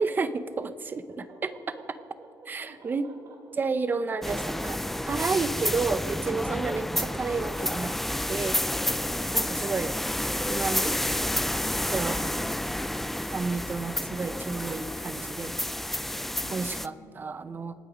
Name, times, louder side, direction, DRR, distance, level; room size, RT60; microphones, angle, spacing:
voice 1, 0.0-1.5 2.5-3.1 3.6-7.9 8.3-8.6 9.3-9.9 10.5-11.0 11.9-12.2 13.3-15.5 16.5-17.7, right 4 dB, 25° right, 13 dB, 0.7 m, -31 dB
voice 2, 1.3-2.3 2.6-3.4 8.9-10.0 16.3-17.2, right 2 dB, 50° right, -1 dB, 4.4 m, -50 dB
sound 1, 4.2-16.9, left 1 dB, 5° left, 0.3 m, -30 dB
27.0 x 9.0 x 5.1 m, 2.8 s
cardioid pair, 140°, 7 cm